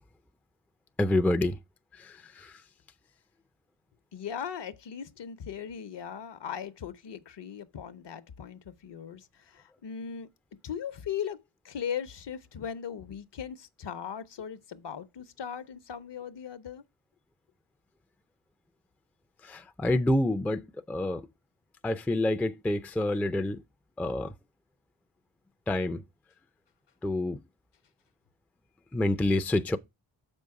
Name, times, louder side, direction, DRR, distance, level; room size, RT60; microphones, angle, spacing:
voice 1, 1.0-1.6 2.0-2.5 19.4-21.3 21.8-23.6 24.0-24.3 25.7-26.0 27.0-27.4 28.9-29.8, left 1 dB, 5° left, 0.3 m, -27 dB
voice 2, 4.1-10.3 10.6-11.4 11.6-16.8, left 8 dB, 60° left, 0.8 m, -38 dB
6.9 x 5.4 x 4.7 m
wide cardioid pair, 100°, 48 cm